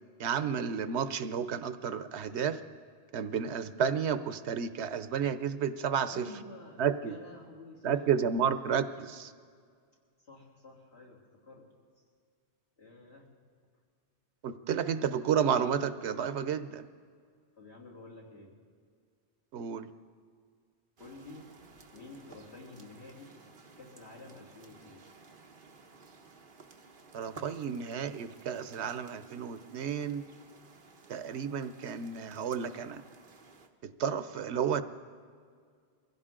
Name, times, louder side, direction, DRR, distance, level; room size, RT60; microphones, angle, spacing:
voice 1, 0.2-2.6 3.1-6.3 6.8-7.2 7.8-9.3 14.4-16.9 19.5-19.9 27.1-30.2 31.1-33.0 33.8-34.8, right 7 dB, 85° right, 12 dB, 1.0 m, -31 dB
voice 2, 6.1-8.0 10.2-11.6 12.8-13.3 17.6-18.5 21.0-21.5 21.9-25.0, left 2 dB, 80° left, -4 dB, 3.3 m, -50 dB
sound 1, 21.0-33.7, right 4 dB, 55° right, 1.2 m, -55 dB
23.0 x 16.0 x 3.8 m, 2.1 s
omnidirectional pair, 1.1 m